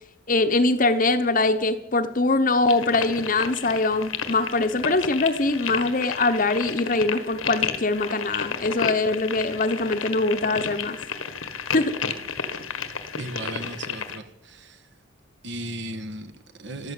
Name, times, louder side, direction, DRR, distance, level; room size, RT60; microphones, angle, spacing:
voice 1, 0.3-11.0 11.7-12.0, left 2 dB, 40° left, 9 dB, 1.0 m, -23 dB
sound 1, 2.7-14.2, left 6 dB, 85° left, 1.5 m, -32 dB
voice 2, 13.1-14.9 15.4-16.9, right 1 dB, 60° right, 7 dB, 1.5 m, -36 dB
13.5 x 12.5 x 8.4 m, 0.90 s
head